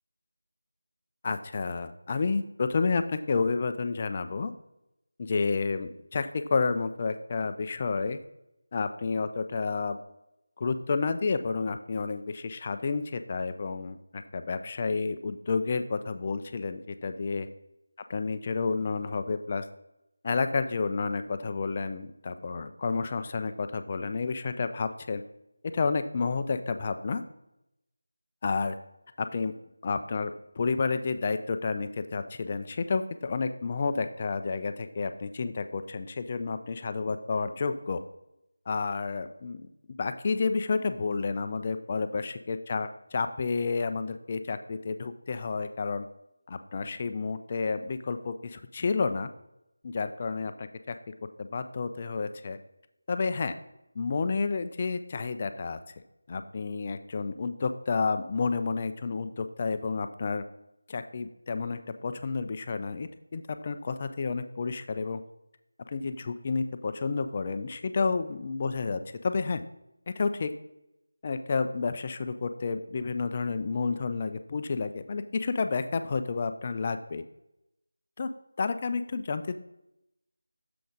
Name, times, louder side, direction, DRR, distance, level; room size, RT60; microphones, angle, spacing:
voice 1, 1.2-4.5 5.2-8.2 8.7-10.0 10.6-17.5 18.1-19.6 20.2-25.2 25.7-27.2 28.4-28.8 29.2-29.5 29.8-30.3 30.6-38.0 38.7-39.6 40.0-46.1 46.5-49.3 49.8-51.0 51.4-52.6 53.1-53.5 54.0-55.8 56.3-60.4 60.9-65.2 65.9-69.6 70.1-70.5 71.2-77.2 78.2-78.3 78.6-79.5, left 4 dB, 30° left, 9 dB, 0.3 m, -30 dB
6.7 x 3.9 x 5.1 m, 0.86 s
figure-of-eight pair, 170°, 0 cm